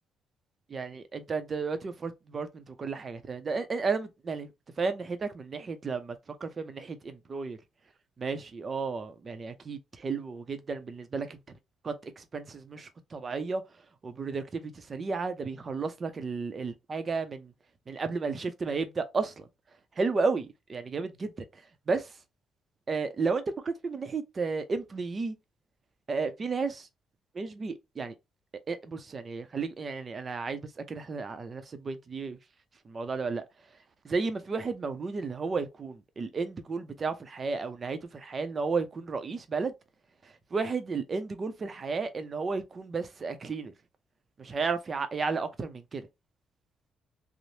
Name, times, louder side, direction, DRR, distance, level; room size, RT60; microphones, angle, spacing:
voice 1, 0.7-4.5 4.8-7.6 8.2-11.6 11.8-13.6 14.0-17.5 17.9-19.5 20.0-22.2 22.9-25.4 26.1-26.9 27.3-28.1 28.7-32.4 32.8-33.4 34.0-39.7 40.2-43.7 44.4-46.1, right 4 dB, 40° right, 0.5 m, -33 dB
3.0 x 2.0 x 2.7 m
cardioid pair, 90°, 0 cm